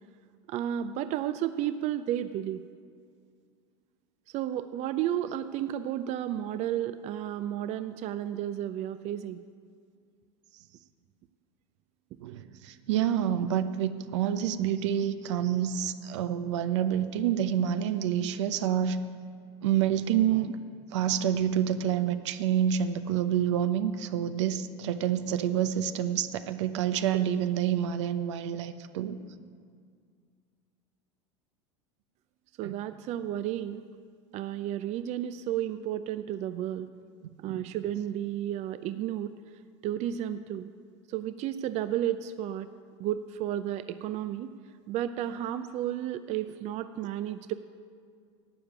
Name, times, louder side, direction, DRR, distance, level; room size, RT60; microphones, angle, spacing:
voice 1, 0.5-2.6 4.3-9.4 32.6-33.8 34.3-36.9 37.4-39.3 39.8-40.7 41.1-42.7 43.0-44.6 44.9-47.5, right 11 dB, 50° right, 11 dB, 0.5 m, -32 dB
voice 2, 12.2-19.0 19.6-20.6 20.9-29.2 32.6-32.7 37.5-37.7, right 9 dB, 75° right, 10 dB, 0.8 m, -28 dB
12.0 x 8.0 x 8.8 m, 2.1 s
hypercardioid pair, 90°, 15 cm